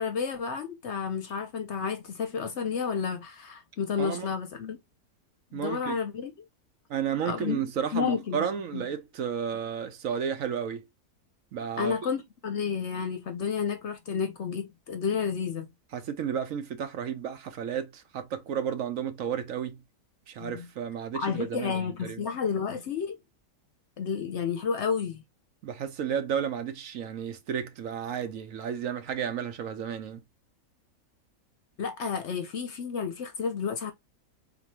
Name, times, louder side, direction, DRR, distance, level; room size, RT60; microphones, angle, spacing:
voice 1, 0.0-4.8 5.5-6.3 7.2-7.6 7.9-8.5 8.7-8.8 11.8-15.7 20.4-20.7 21.1-23.2 24.0-25.2 31.8-33.9, left 6 dB, 60° left, 0.8 m, -31 dB
voice 2, 4.0-4.3 5.5-6.0 6.9-10.8 11.5-12.0 15.9-19.8 20.3-22.2 25.6-30.2, right 8 dB, 65° right, 1.1 m, -32 dB
4.2 x 3.0 x 2.8 m
omnidirectional pair, 1.6 m